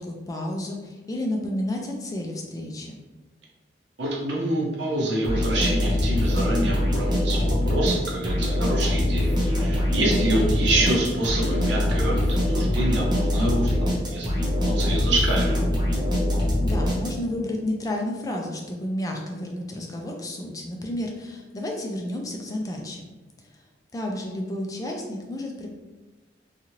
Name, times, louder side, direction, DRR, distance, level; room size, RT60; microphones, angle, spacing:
voice 1, 0.0-3.0 16.6-23.1 23.9-25.7, left 1 dB, 20° left, 1 dB, 0.3 m, -31 dB
voice 2, 4.0-9.3 9.6-15.6, right 1 dB, 75° right, -3 dB, 0.8 m, -27 dB
sound 1, 5.2-17.4, left 1 dB, 25° right, 0.7 m, -23 dB
2.7 x 2.4 x 3.0 m, 1.2 s
head